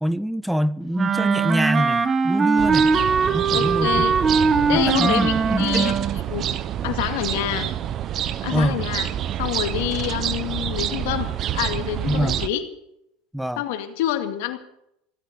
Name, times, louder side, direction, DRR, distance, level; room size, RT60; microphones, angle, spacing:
voice 1, 0.0-2.9 3.3-4.0 4.7-6.0 8.5-8.8 12.1-12.4 13.3-13.6, equal, ahead, 0.5 m, -24 dB
Wind instrument woodwind instrument, 0.9-6.2, right 5 dB, 25° right, 1.3 m, -21 dB
sound 1, 2.6-12.5, right 10 dB, 45° right, 0.9 m, -27 dB
voice 2, 3.5-4.1 4.7-6.0 6.3-6.5 6.8-7.7 8.4-9.1 9.4-12.6 13.6-14.6, left 13 dB, 75° left, 2.3 m, -27 dB
16.5 x 9.4 x 8.6 m
supercardioid pair, 100°, 0 cm